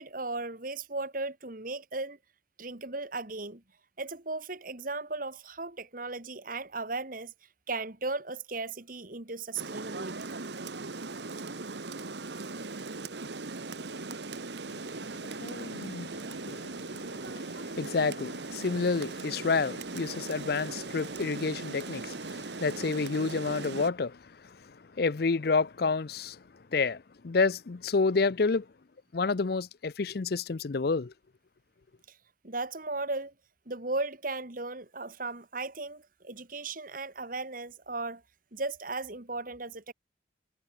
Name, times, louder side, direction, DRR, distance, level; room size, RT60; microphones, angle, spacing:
voice 1, 0.0-2.2 2.6-3.6 4.0-7.3 7.7-10.3 32.1-32.2 32.4-33.3 33.7-38.2 38.5-39.9, right 3 dB, 45° right, 2.0 m, -36 dB
Rain, 9.6-23.9, right 3 dB, 60° right, 1.3 m, -39 dB
voice 2, 15.1-24.2 24.6-26.4 26.7-28.7 29.1-31.1, left 4 dB, 50° left, 0.5 m, -30 dB
head